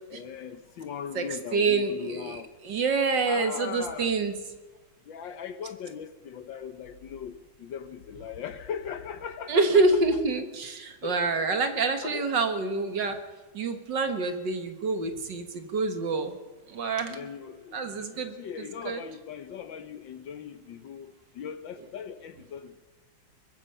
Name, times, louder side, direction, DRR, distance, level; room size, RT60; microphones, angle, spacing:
voice 1, 0.1-2.5 3.3-4.2 5.1-10.0 11.0-11.3 12.0-12.3 17.0-22.8, left 7 dB, 65° left, 10 dB, 1.6 m, -39 dB
voice 2, 1.5-2.4 2.6-4.3 9.5-13.2 13.5-16.4 16.7-17.2 17.7-18.4 18.9-19.0, right 3 dB, 55° right, 7 dB, 2.0 m, -26 dB
23.0 x 20.0 x 5.6 m, 1.3 s
omnidirectional pair, 2.4 m